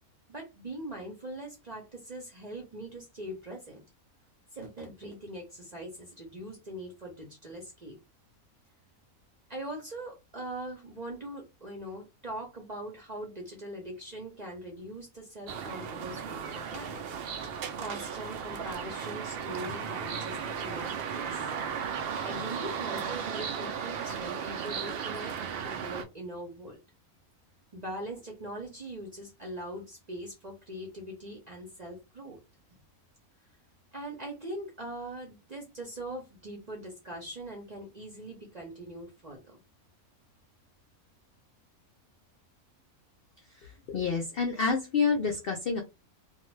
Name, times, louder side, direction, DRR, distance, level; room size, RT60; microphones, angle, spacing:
voice 1, 0.3-3.8 4.5-8.0 9.5-17.1 17.8-21.5 22.2-25.4 25.6-26.8 27.7-32.4 32.7-32.8 33.9-39.6, right 1 dB, 40° right, 0 dB, 0.6 m, -41 dB
sound 1, 15.5-26.0, right 7 dB, 85° right, 0.5 m, -35 dB
voice 2, 43.6-45.8, left 5 dB, 65° left, 2 dB, 0.5 m, -28 dB
2.5 x 2.3 x 3.1 m, 0.24 s
omnidirectional pair, 1.6 m